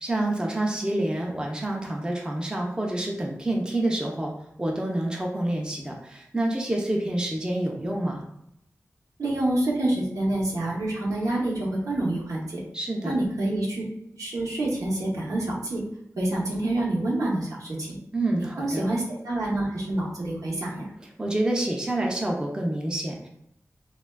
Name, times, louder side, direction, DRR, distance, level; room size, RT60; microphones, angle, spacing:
voice 1, 0.0-4.3 4.6-8.2 12.7-13.2 18.1-18.9 21.2-23.3, right 1 dB, 15° right, -1 dB, 0.5 m, -27 dB
voice 2, 9.2-12.6 13.0-13.8 14.2-15.8 16.2-18.0 18.4-20.9, right 1 dB, 85° right, -4 dB, 0.8 m, -27 dB
3.2 x 2.2 x 2.2 m, 0.79 s
wide cardioid pair, 70°, 6 cm